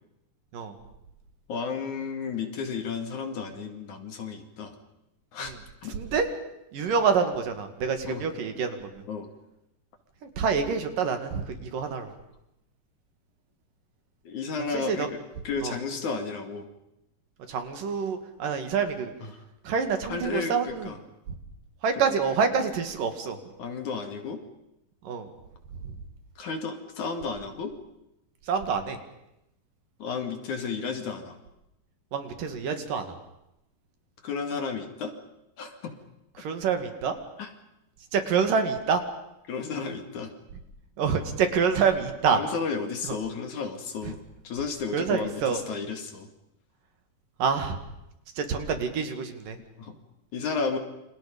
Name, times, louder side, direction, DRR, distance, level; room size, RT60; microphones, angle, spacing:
voice 1, 1.5-4.7 5.3-5.5 5.8-5.9 8.1-8.3 9.1-9.3 14.2-15.1 15.4-16.7 19.2-19.3 20.1-21.0 22.0-22.1 23.6-24.4 26.4-27.7 30.0-31.4 34.2-35.1 35.6-35.9 37.4-37.5 39.5-40.3 42.3-44.2 44.4-46.3 49.8-50.0 50.3-50.8, left 5 dB, 60° left, 6 dB, 3.4 m, -32 dB
voice 2, 5.9-6.3 6.7-9.0 10.4-12.1 14.6-15.1 15.6-15.8 17.5-19.1 19.7-20.9 21.8-23.4 25.0-25.3 28.5-29.0 32.1-33.1 36.4-37.1 38.1-39.0 41.0-42.4 44.9-45.6 47.4-47.8 48.4-49.6, right 6 dB, 65° right, 7 dB, 3.8 m, -27 dB
29.0 x 28.0 x 5.3 m, 0.86 s
omnidirectional pair, 4.2 m